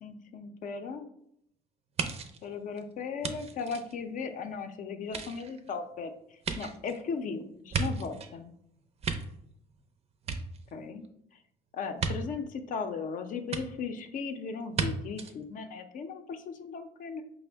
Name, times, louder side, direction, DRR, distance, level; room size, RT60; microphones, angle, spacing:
voice 1, 0.0-1.1 2.4-8.5 10.7-11.1 11.7-17.2, left 5 dB, 50° left, 8 dB, 0.5 m, -37 dB
sound 1, 2.0-4.6 5.0-8.4 8.8-9.8 10.1-11.1 12.0-12.1 13.5-13.6 14.7-14.9 15.2-15.3, right 5 dB, 40° right, 0.5 m, -35 dB
5.1 x 2.1 x 3.3 m, 0.72 s
cardioid pair, 110°, 17 cm